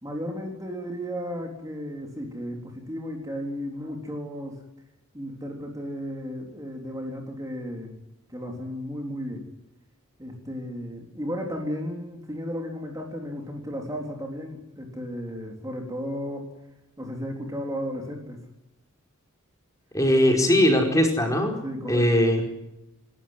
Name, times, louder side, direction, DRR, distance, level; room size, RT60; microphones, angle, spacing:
voice 1, 0.0-4.6 5.1-8.0 8.3-9.4 10.2-16.5 17.0-18.4 21.6-22.1, equal, 15° right, 1 dB, 3.8 m, -34 dB
voice 2, 19.9-21.6 21.9-22.4, equal, 15° left, 3 dB, 4.9 m, -20 dB
29.0 x 14.0 x 9.7 m, 0.90 s
head